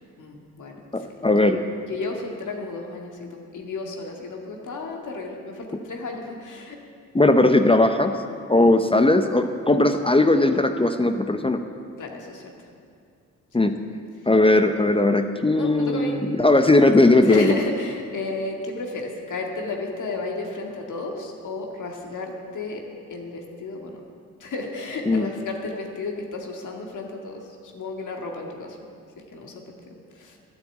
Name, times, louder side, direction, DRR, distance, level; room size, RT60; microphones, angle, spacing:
voice 1, 0.2-1.5 1.9-6.8 12.0-12.5 15.5-16.1 17.2-22.8 23.1-24.0 24.4-28.8 29.2-30.4, left 3 dB, 60° left, 1 dB, 2.0 m, -33 dB
voice 2, 0.9-1.6 7.1-8.2 8.5-11.7 13.5-13.8 14.3-17.5 25.1-25.3, left 2 dB, 15° left, 7 dB, 0.7 m, -18 dB
12.0 x 7.3 x 8.3 m, 2.3 s
supercardioid pair, 60°, 34 cm